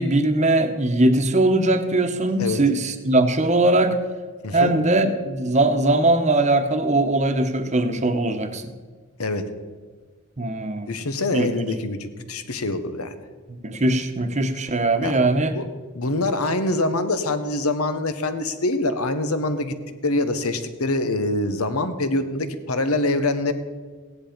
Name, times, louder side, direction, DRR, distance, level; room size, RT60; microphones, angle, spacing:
voice 1, 0.0-4.0 4.5-8.7 10.4-10.9 11.3-11.7 13.6-15.5, right 2 dB, 35° right, 7 dB, 1.0 m, -20 dB
voice 2, 10.9-13.2 15.0-15.2 15.5-15.7 15.9-19.7 20.0-23.5, left 2 dB, 85° left, 10 dB, 1.1 m, -24 dB
16.0 x 10.5 x 5.2 m, 1.5 s
head